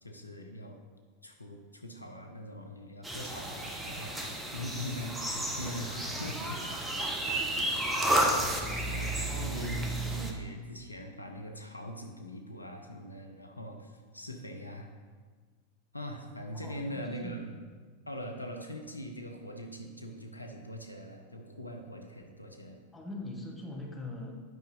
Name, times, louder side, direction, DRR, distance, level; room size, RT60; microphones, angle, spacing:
voice 1, 0.0-0.8 1.2-6.6 7.5-7.8 8.9-14.9 15.9-17.6 18.1-22.8, equal, 85° left, 3 dB, 0.7 m, -42 dB
sound 1, 3.0-10.3, right 1 dB, 10° right, 1.0 m, -32 dB
voice 2, 9.3-9.7 16.5-17.4 22.9-24.4, left 2 dB, 10° left, -1 dB, 1.3 m, -42 dB
9.2 x 5.7 x 3.8 m, 1.5 s
figure-of-eight pair, 90°, 0 cm